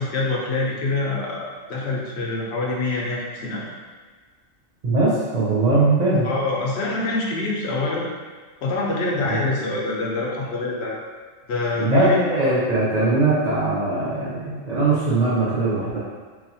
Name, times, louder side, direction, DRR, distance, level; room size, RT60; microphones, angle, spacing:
voice 1, 0.0-3.7 6.2-8.1 8.6-11.0 11.5-12.2, left 2 dB, 60° left, -3 dB, 0.9 m, -25 dB
voice 2, 4.8-6.3 9.2-9.4 11.8-16.0, right 2 dB, 40° right, -9 dB, 0.6 m, -20 dB
4.0 x 2.9 x 2.7 m, 1.4 s
omnidirectional pair, 1.4 m